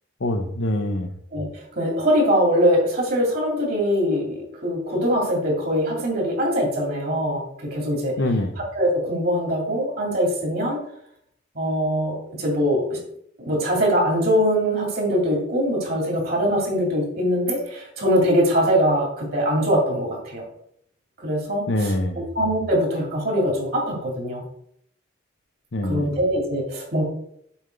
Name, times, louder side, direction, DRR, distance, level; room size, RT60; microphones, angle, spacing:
voice 1, 0.2-1.1 8.2-8.5 21.7-22.3 25.7-26.1, left 1 dB, 70° left, 7 dB, 0.8 m, -24 dB
voice 2, 1.8-8.1 8.7-10.8 11.5-13.0 13.4-20.4 21.2-24.4 25.8-27.0, equal, 50° right, -2 dB, 2.5 m, -22 dB
7.1 x 3.6 x 5.2 m, 0.70 s
head